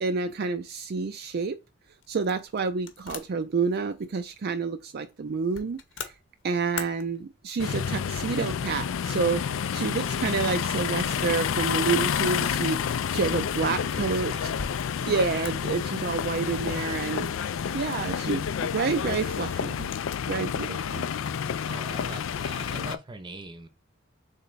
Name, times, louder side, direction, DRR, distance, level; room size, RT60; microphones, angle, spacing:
voice 1, 0.0-1.6 2.1-6.1 6.4-9.4 9.7-14.5 15.1-17.3 17.7-19.9 20.3-21.1 22.8-22.9, right 4 dB, 55° right, 0.4 m, -29 dB
sound 1, 1.3-20.8, left 6 dB, 70° left, 0.8 m, -48 dB
sound 2, 7.6-23.0, left 7 dB, 90° left, 0.4 m, -29 dB
voice 2, 13.5-14.5 21.7-23.7, right 2 dB, 25° right, 0.7 m, -42 dB
4.0 x 3.3 x 3.9 m
head